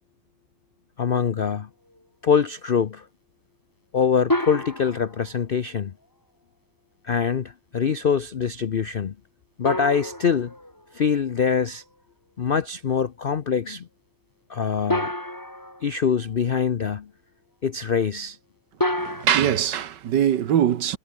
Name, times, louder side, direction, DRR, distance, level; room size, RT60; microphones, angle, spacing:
voice 1, 1.0-1.7 2.2-3.1 3.9-5.9 7.0-9.1 9.6-10.5 10.9-11.8 12.4-13.9 14.5-15.1 15.8-17.1 17.6-18.4, left 6 dB, 75° left, 0.5 m, -24 dB
sound 1, 4.3-5.4 9.6-11.2 14.9-16.1 18.8-19.3, left 1 dB, 10° left, 3.3 m, -28 dB
voice 2, 19.0-21.0, right 10 dB, 70° right, 1.7 m, -22 dB
omnidirectional pair, 2.0 m